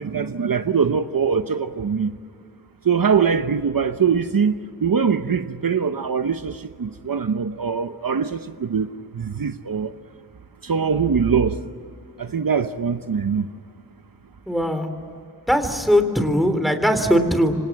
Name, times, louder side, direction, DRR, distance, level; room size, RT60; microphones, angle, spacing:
voice 1, 0.0-2.1 2.8-4.5 4.8-8.9 9.1-9.9 10.6-11.6 12.2-13.5, right 6 dB, 60° right, 0.9 m, -22 dB
voice 2, 14.5-14.9 15.5-17.6, equal, ahead, 3.5 m, -20 dB
27.5 x 25.5 x 7.5 m
wide cardioid pair, 75°, 39 cm